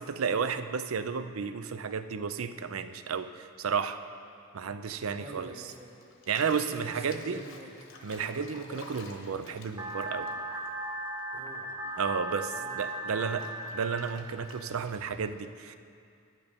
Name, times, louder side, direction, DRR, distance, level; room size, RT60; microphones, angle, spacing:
voice 1, 0.0-4.0 4.5-5.5 6.3-7.4 8.0-10.3 12.0-13.4 13.7-15.8, right 6 dB, 85° right, 11 dB, 0.5 m, -32 dB
voice 2, 5.2-6.0 6.7-7.7 8.3-8.6 11.3-11.7 12.5-13.5, right 1 dB, 30° right, 0 dB, 1.3 m, -47 dB
Bathtub (filling or washing), 5.5-11.4 11.7-15.2, left 3 dB, 65° left, 1.1 m, -51 dB
sound 1, 9.8-14.8, right 1 dB, 15° right, 0.5 m, -37 dB
11.0 x 9.4 x 5.1 m, 2.4 s
head